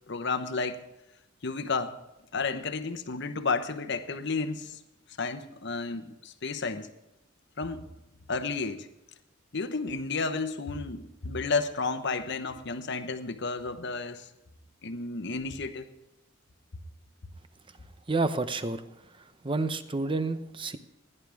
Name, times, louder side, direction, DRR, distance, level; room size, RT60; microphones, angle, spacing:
voice 1, 0.1-0.8 1.4-2.0 2.3-4.8 5.2-6.9 7.6-7.9 8.3-8.9 9.5-14.3 14.8-15.9, left 4 dB, 60° left, 10 dB, 1.0 m, -32 dB
voice 2, 18.1-18.8 19.2-20.8, right 3 dB, 25° right, 11 dB, 0.8 m, -30 dB
16.5 x 11.0 x 3.5 m, 0.92 s
head